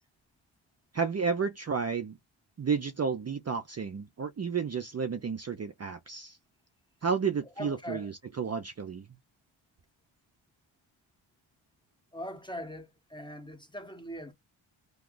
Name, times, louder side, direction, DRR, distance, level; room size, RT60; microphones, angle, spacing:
voice 1, 0.9-2.2 2.6-6.4 7.0-9.1, right 6 dB, 35° right, 0.5 m, -32 dB
voice 2, 7.6-8.1 12.1-14.3, equal, 10° left, 1.0 m, -41 dB
2.9 x 2.3 x 3.8 m
cardioid pair, 75°, 49 cm